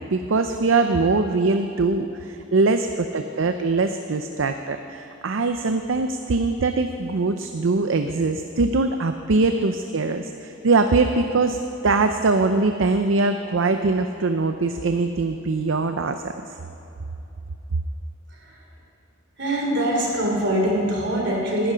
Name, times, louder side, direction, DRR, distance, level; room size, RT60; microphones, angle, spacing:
voice 1, 0.0-11.6 11.8-16.3, right 3 dB, 80° right, 7 dB, 0.6 m, -22 dB
voice 2, 19.4-21.7, right 1 dB, 65° right, -1 dB, 3.4 m, -23 dB
19.5 x 11.0 x 5.1 m, 2.9 s
head